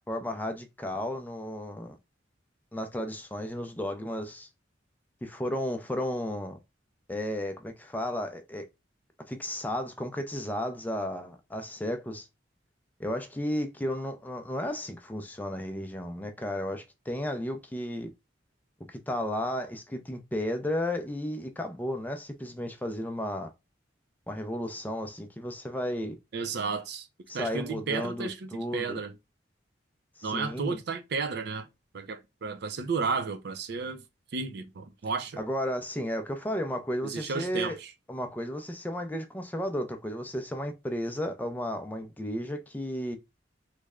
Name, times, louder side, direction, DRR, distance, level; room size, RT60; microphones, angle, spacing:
voice 1, 0.1-2.0 2.7-4.5 5.2-6.6 7.1-8.6 9.3-12.3 13.0-18.1 18.9-23.5 24.3-26.2 27.3-29.0 30.2-30.8 35.4-37.8 38.1-43.2, left 1 dB, 10° left, 0.4 m, -33 dB
voice 2, 26.3-27.1 27.3-29.1 30.2-31.7 31.9-34.0 34.3-35.4 37.0-37.9, right 4 dB, 65° right, 0.5 m, -33 dB
3.2 x 2.1 x 3.5 m
head